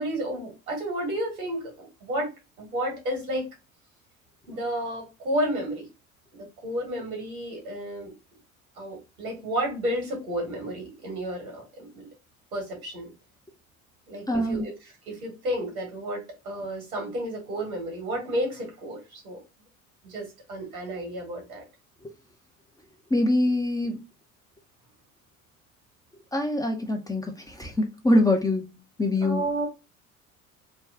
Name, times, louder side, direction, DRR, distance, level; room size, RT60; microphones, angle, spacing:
voice 1, 0.0-2.3 2.6-3.5 4.5-5.9 6.3-8.1 8.8-12.1 12.5-13.1 14.1-14.7 15.1-19.4 20.0-21.6 29.2-29.7, right 1 dB, 80° right, 1.8 m, -31 dB
voice 2, 14.3-14.7 23.1-24.0 26.3-28.7 29.0-29.5, left 1 dB, 10° left, 0.6 m, -24 dB
3.5 x 2.3 x 3.5 m
figure-of-eight pair, 65°, 42 cm